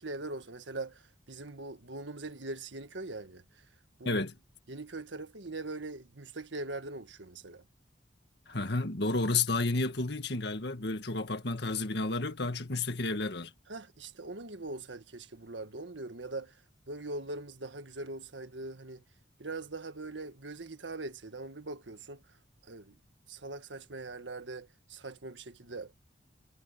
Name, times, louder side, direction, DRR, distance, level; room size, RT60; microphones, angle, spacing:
voice 1, 0.0-3.6 4.0-4.2 4.7-7.6 13.7-16.6 16.9-19.0 19.4-22.2 22.6-23.0 23.3-25.9, right 2 dB, 80° right, 1.6 m, -41 dB
voice 2, 8.5-13.5, left 3 dB, 65° left, 1.9 m, -31 dB
head